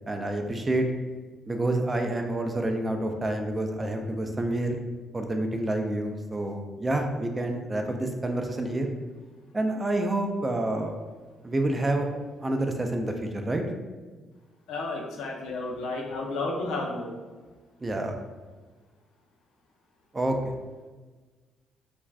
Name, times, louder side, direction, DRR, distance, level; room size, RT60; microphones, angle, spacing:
voice 1, 0.1-0.9 1.5-4.8 5.1-8.9 9.5-11.0 11.4-12.1 12.4-13.6 17.8-18.1 20.1-20.4, right 1 dB, 25° right, 4 dB, 0.3 m, -28 dB
voice 2, 14.7-17.1, left 2 dB, 80° left, 0 dB, 0.5 m, -32 dB
2.5 x 2.2 x 3.2 m, 1.3 s
cardioid pair, 90°, 0 cm